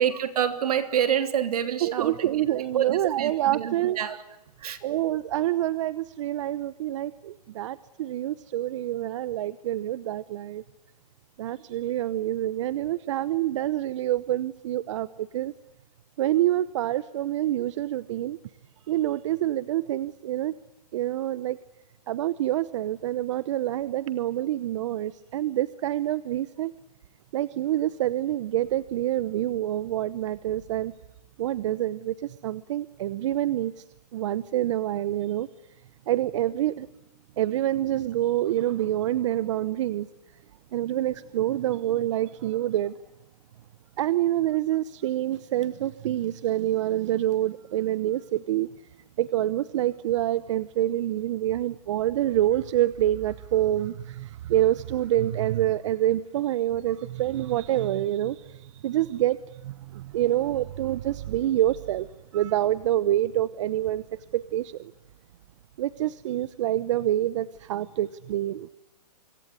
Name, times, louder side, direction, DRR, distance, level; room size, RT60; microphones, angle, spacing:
voice 1, 0.0-4.2 4.6-4.8, right 9 dB, 65° right, 3.2 m, -27 dB
voice 2, 1.8-4.0 4.8-10.6 11.4-15.5 16.2-18.4 18.9-20.5 20.9-21.6 22.1-26.7 27.3-30.9 31.4-33.8 34.1-35.5 36.1-36.9 37.4-40.1 40.7-42.9 44.0-48.7 49.2-59.4 59.6-62.1 62.3-64.0 64.3-64.8 65.8-68.7, right 13 dB, 50° right, 0.9 m, -27 dB
25.5 x 22.5 x 9.9 m
hypercardioid pair, 150°, 21 cm